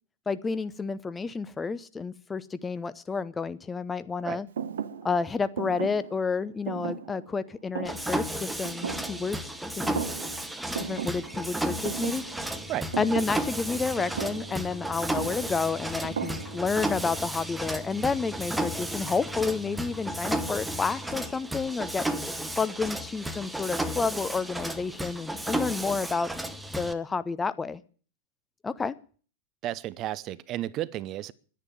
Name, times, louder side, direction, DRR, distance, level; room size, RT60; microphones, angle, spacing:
voice 1, 0.3-4.5 5.0-10.0 10.8-12.2 13.0-26.3 26.7-27.8 28.6-29.0, left 4 dB, 15° left, 0.7 m, -30 dB
Thump thud, 4.6-9.6 9.8-10.5 10.7-16.9, right 8 dB, 65° right, 1.0 m, -37 dB
Mechanisms, 7.8-26.9, right 1 dB, 5° right, 1.1 m, -33 dB
voice 2, 29.6-31.3, right 13 dB, 35° right, 0.6 m, -33 dB
11.0 x 10.5 x 9.2 m
figure-of-eight pair, 90°, 0 cm